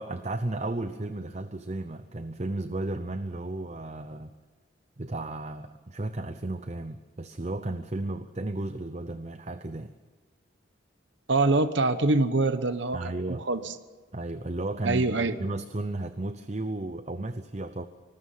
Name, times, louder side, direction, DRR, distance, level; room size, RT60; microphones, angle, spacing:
voice 1, 0.0-4.3 5.0-9.9 12.9-13.5 14.1-15.1 15.4-17.9, right 2 dB, 35° right, 10 dB, 0.8 m, -34 dB
voice 2, 11.3-13.0 13.3-13.6 14.8-15.4, right 2 dB, 65° right, 11 dB, 1.1 m, -24 dB
25.5 x 20.0 x 5.7 m, 1.4 s
head